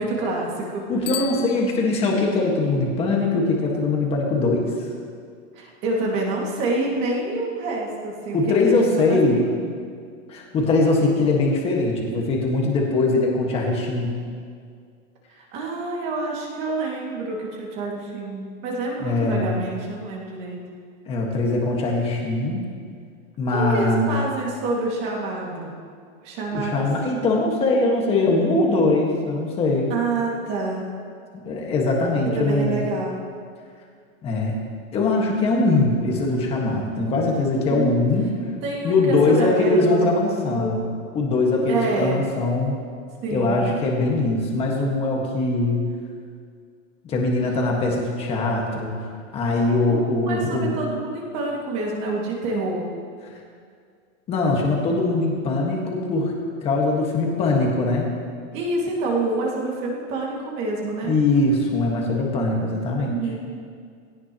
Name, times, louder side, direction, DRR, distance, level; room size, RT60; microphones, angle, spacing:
voice 1, 0.0-0.9 1.6-1.7 5.6-8.8 9.1-9.7 15.3-20.6 23.5-25.7 26.2-26.9 29.9-30.9 32.3-33.2 37.5-38.0 38.6-40.8 41.7-42.2 43.2-43.7 49.9-52.9 58.5-61.2 63.1-63.6, right 2 dB, 25° right, -2 dB, 2.1 m, -27 dB
voice 2, 0.9-4.7 8.3-9.4 10.3-14.1 19.0-19.6 21.1-22.7 23.4-24.1 26.5-29.9 31.3-32.8 34.2-34.6 34.9-38.3 38.8-40.8 41.1-42.7 43.3-45.8 47.0-48.9 49.3-50.8 54.3-56.3 56.6-58.1 61.0-63.2, left 2 dB, 15° left, -1 dB, 1.6 m, -21 dB
Bicycle bell, 1.0-2.3, left 12 dB, 65° left, 0.7 m, -35 dB
18.5 x 17.5 x 3.0 m, 2.1 s
supercardioid pair, 175°, 40 cm